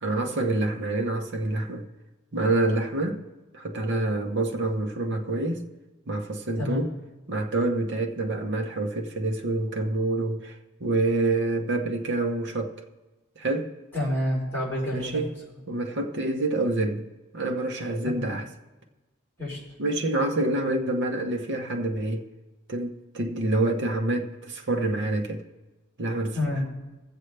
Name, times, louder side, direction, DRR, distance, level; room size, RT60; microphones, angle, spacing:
voice 1, 0.0-1.9 2.3-3.2 3.5-5.6 6.1-6.9 7.3-12.8 13.4-13.7 14.9-15.3 15.7-17.1 17.3-18.5 19.8-22.3 22.7-25.4 26.0-26.3, right 2 dB, 55° right, 1.0 m, -27 dB
voice 2, 13.9-15.2 18.0-18.3 19.4-19.6 26.3-26.6, left 1 dB, 10° left, 4.2 m, -28 dB
21.5 x 7.7 x 3.3 m
head